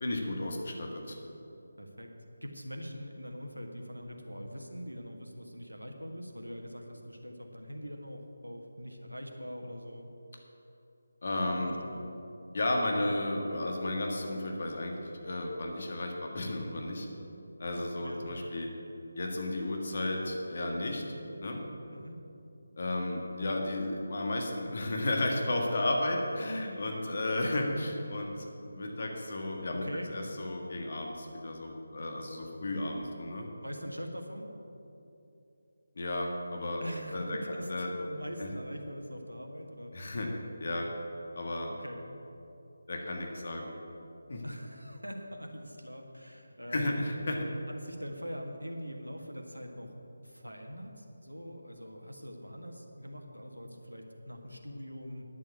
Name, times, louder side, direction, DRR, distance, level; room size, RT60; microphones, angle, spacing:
voice 1, 0.0-1.2 11.2-11.8 12.5-17.1 17.6-18.7 19.1-21.0 21.4-21.6 22.8-28.4 28.7-33.5 35.9-36.8 37.1-37.9 38.4-38.5 39.9-40.3 40.6-40.9 41.4-41.7 42.9-43.7 44.3-44.4 46.7-47.5, left 1 dB, 45° left, 1 dB, 1.7 m, -33 dB
voice 2, 1.8-2.1 2.4-10.1 11.4-12.1 18.0-18.3 21.9-22.2 29.7-30.1 33.6-34.5 36.8-39.9 40.2-40.3 41.7-42.0 44.4-47.1 47.7-49.9 50.2-55.2, equal, 90° right, 2 dB, 1.5 m, -43 dB
10.0 x 7.1 x 8.1 m, 2.8 s
figure-of-eight pair, 155°, 0 cm